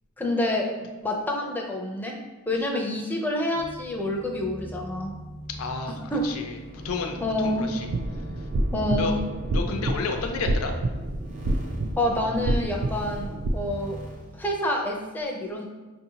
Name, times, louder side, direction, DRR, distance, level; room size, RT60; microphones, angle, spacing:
voice 1, 0.2-2.1 2.5-5.1 6.1-6.2 7.2-7.7 8.7-9.2 9.7-9.8 12.0-14.0 14.3-15.7, left 1 dB, 10° left, -1 dB, 0.4 m, -27 dB
sound 1, 3.5-14.6, equal, 35° right, 0.7 m, -41 dB
voice 2, 5.6-6.0 6.2-6.5 6.8-7.9 9.0-9.1 9.5-10.8, left 4 dB, 75° left, 4 dB, 0.4 m, -31 dB
sound 2, 7.9-13.5, right 1 dB, 60° right, 0.3 m, -28 dB
5.5 x 2.7 x 2.8 m, 1.2 s
head